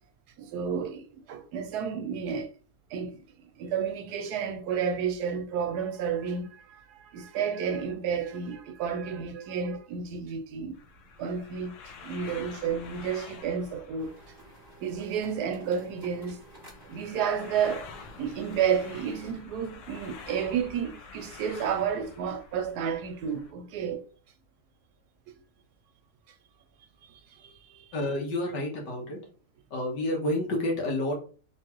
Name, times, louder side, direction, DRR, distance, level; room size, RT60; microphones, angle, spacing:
voice 1, 0.4-2.5 2.9-3.2 3.6-10.8 11.2-11.7 12.0-14.2 14.8-16.4 16.9-17.9 18.2-24.0 27.0-27.9, right 7 dB, 75° right, 1.1 m, -31 dB
sound 1, 10.7-23.5, left 4 dB, 60° left, 0.9 m, -48 dB
sound 2, 14.0-19.3, right 1 dB, 15° left, 1.7 m, -53 dB
voice 2, 27.9-29.2 29.7-31.1, left 1 dB, 80° left, 1.9 m, -29 dB
3.6 x 3.2 x 2.9 m
omnidirectional pair, 1.8 m